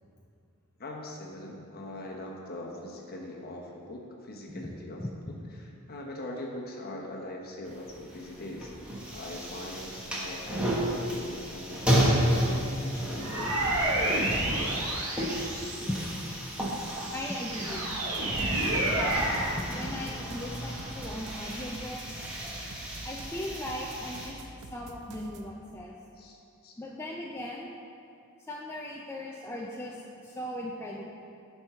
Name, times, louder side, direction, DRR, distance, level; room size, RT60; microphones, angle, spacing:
voice 1, 0.8-5.0 5.9-8.7 9.1-13.6 26.1-26.7, left 1 dB, 45° left, -1 dB, 1.1 m, -41 dB
voice 2, 4.5-5.4 15.9-16.0 17.1-17.9 18.7-22.0 23.0-25.9 26.8-27.7 28.5-31.0, left 1 dB, 10° left, -3 dB, 0.5 m, -38 dB
sound 1, 7.6-24.3, equal, 5° right, 1.3 m, -33 dB
sound 2, 13.2-16.1 16.7-19.5, right 1 dB, 70° right, 1.5 m, -30 dB
sound 3, 17.9-25.5, right 3 dB, 90° right, 0.7 m, -47 dB
9.6 x 4.6 x 5.7 m, 2.5 s
head